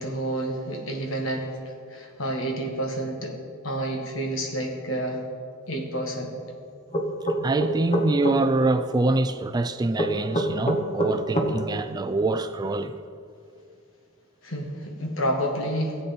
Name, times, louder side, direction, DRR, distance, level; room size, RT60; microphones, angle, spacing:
voice 1, 0.0-3.4 3.6-5.2 5.7-6.3 14.4-16.0, right 1 dB, 70° left, 1.7 m, -29 dB
sound 1, 6.9-8.4 10.0-11.5, right 1 dB, 30° left, 1.1 m, -24 dB
voice 2, 7.4-13.0, right 2 dB, 20° right, 0.3 m, -25 dB
15.5 x 8.2 x 4.3 m
head